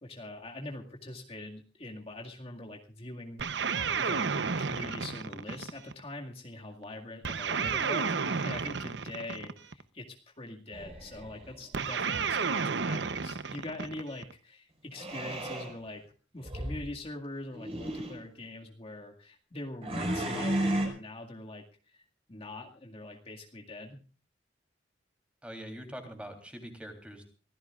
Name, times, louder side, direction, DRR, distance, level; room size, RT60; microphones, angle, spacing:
voice 1, 0.0-3.4 4.0-4.3 4.6-16.0 16.3-22.0 22.3-24.0, left 1 dB, 35° left, 1 dB, 2.1 m, -43 dB
sound 1, 3.4-6.0 7.2-9.8 11.7-14.3, right 5 dB, 70° right, 0.9 m, -32 dB
sound 2, 10.7-11.6 15.0-15.7 16.4-16.9 17.5-18.2 19.8-20.9, right 1 dB, 35° right, 5.2 m, -33 dB
voice 2, 25.4-27.3, equal, 5° right, 5 dB, 3.4 m, -43 dB
24.5 x 16.0 x 2.5 m, 0.37 s
head